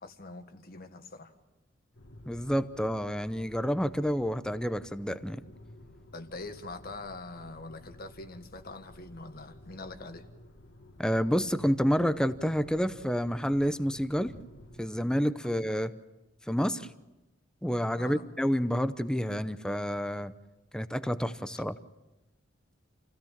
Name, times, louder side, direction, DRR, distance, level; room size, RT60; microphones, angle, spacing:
voice 1, 0.0-1.3 6.1-10.3 18.0-18.3 21.5-21.6, left 2 dB, 50° left, 7 dB, 1.6 m, -43 dB
sound 1, 1.9-14.9, left 1 dB, 75° left, 1.9 m, -53 dB
voice 2, 2.3-5.4 11.0-14.3 14.8-15.9 16.5-16.9 17.6-20.3 20.7-21.8, equal, 5° left, 12 dB, 0.7 m, -29 dB
28.0 x 16.5 x 7.4 m, 1.1 s
head